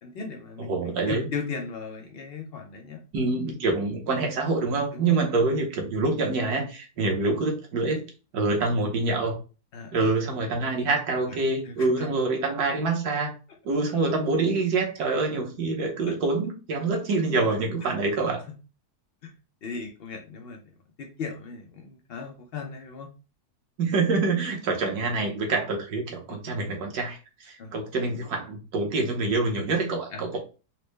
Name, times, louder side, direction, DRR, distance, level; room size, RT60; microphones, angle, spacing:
voice 1, 0.0-3.0 4.9-5.2 7.0-7.1 9.7-10.0 11.3-11.4 11.6-12.1 16.0-16.1 17.8-17.9 19.2-19.3 19.6-23.1 27.6-27.7 30.1-30.4, left 5 dB, 90° left, 2 dB, 0.5 m, -37 dB
voice 2, 0.6-1.2 3.1-8.0 8.3-9.4 9.9-13.3 13.6-18.4 23.8-30.4, right 3 dB, 70° right, 1 dB, 1.4 m, -26 dB
4.2 x 2.0 x 3.2 m, 0.33 s
omnidirectional pair, 1.7 m